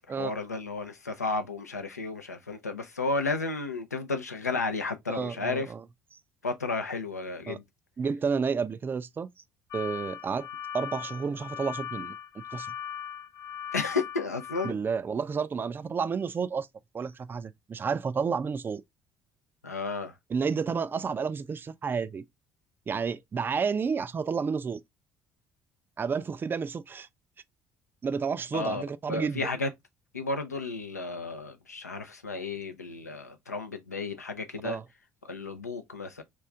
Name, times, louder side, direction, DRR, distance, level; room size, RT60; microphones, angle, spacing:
voice 1, 0.1-5.7 6.4-7.6 13.7-14.8 19.6-20.1 28.5-28.8 29.1-29.7 30.1-34.8 35.2-36.2, left 3 dB, 85° left, 0.4 m, -33 dB
voice 2, 5.1-5.8 7.5-7.6 8.0-9.3 9.7-10.5 10.7-12.2 12.5-12.7 14.6-16.7 16.9-18.8 20.3-22.2 22.9-24.8 26.0-27.1 28.0-29.5 34.6-34.8, right 5 dB, 25° right, 0.3 m, -30 dB
sound 1, 9.7-14.7, left 9 dB, 50° left, 0.9 m, -39 dB
3.0 x 2.4 x 3.4 m
figure-of-eight pair, 50°, 8 cm